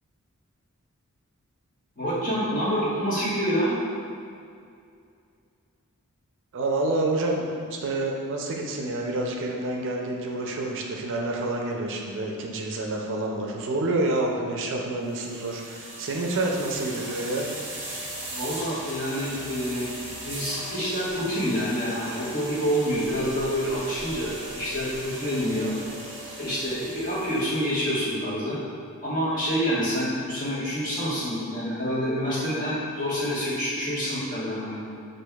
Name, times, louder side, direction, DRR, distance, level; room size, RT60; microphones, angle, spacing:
voice 1, 2.0-3.7 18.3-25.7 26.4-28.6 29.0-34.8, equal, 40° left, -10 dB, 1.3 m, -27 dB
voice 2, 6.5-7.4 7.8-17.5, right 2 dB, 60° right, 0 dB, 0.4 m, -28 dB
sound 1, 15.0-27.8, right 1 dB, 25° right, 1.2 m, -38 dB
6.2 x 2.5 x 2.3 m, 2.4 s
head